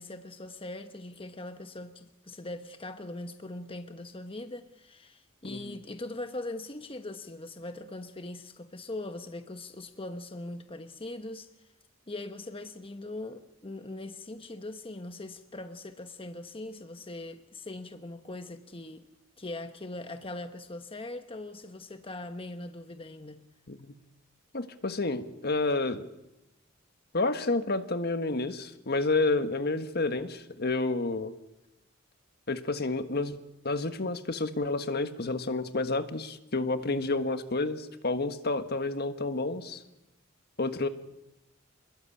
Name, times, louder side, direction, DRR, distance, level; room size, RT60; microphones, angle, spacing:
voice 1, 0.0-11.7 12.1-19.1 19.4-23.4, left 2 dB, 25° left, 1.1 m, -41 dB
voice 2, 24.5-26.0 27.1-31.3 32.5-33.4 33.6-39.8 40.6-40.9, left 3 dB, 50° left, 1.6 m, -30 dB
27.5 x 21.5 x 8.6 m
head